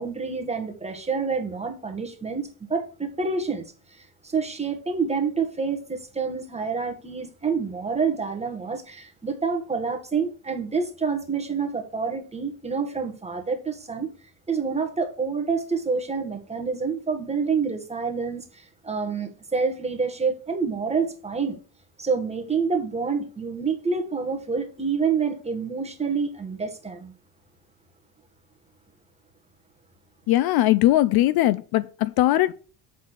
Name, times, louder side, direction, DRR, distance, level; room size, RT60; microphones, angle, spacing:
voice 1, 0.0-14.1 14.5-21.6 22.0-27.1, right 5 dB, 15° right, 1.6 m, -28 dB
voice 2, 30.3-32.5, left 15 dB, 55° left, 0.5 m, -20 dB
8.1 x 4.1 x 6.4 m
cardioid pair, 120°, 46 cm